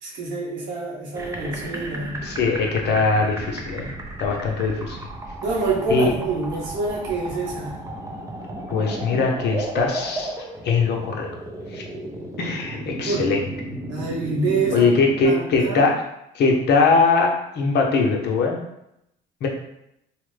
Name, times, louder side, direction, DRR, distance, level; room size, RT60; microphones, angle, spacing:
voice 1, 0.0-2.2 5.4-7.8 13.0-13.3 13.9-14.9 15.2-15.8, right 3 dB, 75° right, -3 dB, 1.0 m, -26 dB
sound 1, 1.1-15.2, right 1 dB, 15° right, 0.5 m, -34 dB
voice 2, 2.2-3.9 4.2-5.0 5.9-6.1 8.7-10.3 10.6-11.3 11.7-11.8 12.4-13.4 14.7-16.0 16.3-18.6 19.4-19.5, left 4 dB, 60° left, 0 dB, 0.7 m, -21 dB
2.9 x 2.1 x 3.2 m, 0.82 s
supercardioid pair, 80°, 19 cm